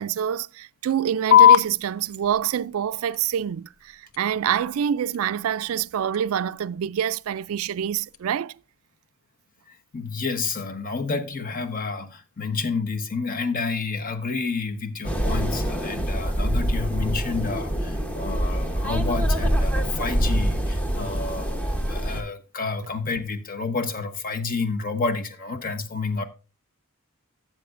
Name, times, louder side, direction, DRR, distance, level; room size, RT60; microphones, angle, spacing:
voice 1, 0.0-8.5, right 9 dB, 65° right, 0.3 m, -26 dB
sound 1, 1.3-8.3, left 10 dB, 65° left, 0.6 m, -24 dB
voice 2, 9.7-26.2, left 4 dB, 40° left, 1.0 m, -30 dB
sound 2, 15.0-22.2, equal, 5° left, 0.9 m, -25 dB
12.5 x 7.5 x 2.5 m
head